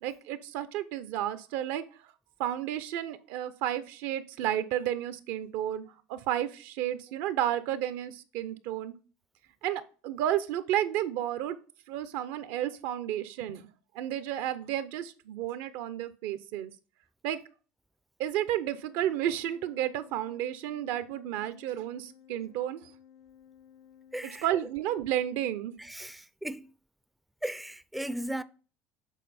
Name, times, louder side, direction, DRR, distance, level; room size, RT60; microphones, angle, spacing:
voice 1, 0.0-1.8 2.4-5.8 6.1-9.0 9.6-11.6 11.9-16.7 17.2-17.4 18.2-22.9 24.2-25.7, right 11 dB, 75° right, 0.6 m, -32 dB
Organ, 18.6-25.1, left 8 dB, 75° left, 1.5 m, -57 dB
voice 2, 24.1-24.5 25.8-26.7 27.4-28.4, right 1 dB, ahead, 0.4 m, -36 dB
7.3 x 3.8 x 4.2 m
supercardioid pair, 90°, 6 cm